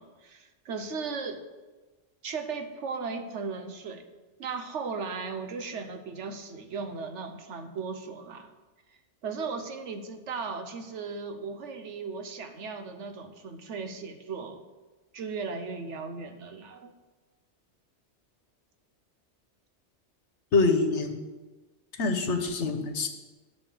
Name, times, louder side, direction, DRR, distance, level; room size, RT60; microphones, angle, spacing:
voice 1, 0.0-1.4 2.2-4.0 4.4-8.5 9.2-14.6 15.1-16.9, right 4 dB, 85° right, 8 dB, 1.3 m, -36 dB
voice 2, 20.5-21.2 22.0-23.1, left 3 dB, 80° left, 7 dB, 1.4 m, -25 dB
11.0 x 6.0 x 6.6 m, 1.2 s
omnidirectional pair, 1.2 m